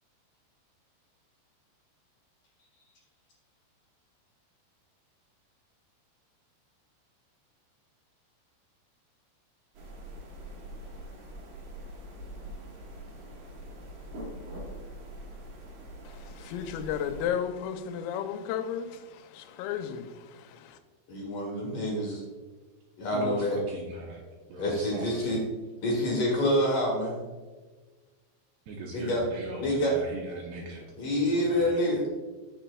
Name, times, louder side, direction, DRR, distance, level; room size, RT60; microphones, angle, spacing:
sound 1, 9.7-17.3, right 1 dB, 60° right, 2.4 m, -43 dB
voice 1, 16.1-20.8, left 8 dB, 90° left, 8 dB, 3.3 m, -34 dB
voice 2, 21.1-22.2 23.0-23.6 24.6-25.4 25.8-27.2 28.9-29.2 29.6-30.0 31.0-32.1, left 1 dB, 60° left, -2 dB, 2.3 m, -27 dB
voice 3, 23.1-25.4 28.7-31.9, right 2 dB, 80° right, 0 dB, 2.5 m, -40 dB
14.5 x 7.1 x 2.3 m, 1.3 s
omnidirectional pair, 5.8 m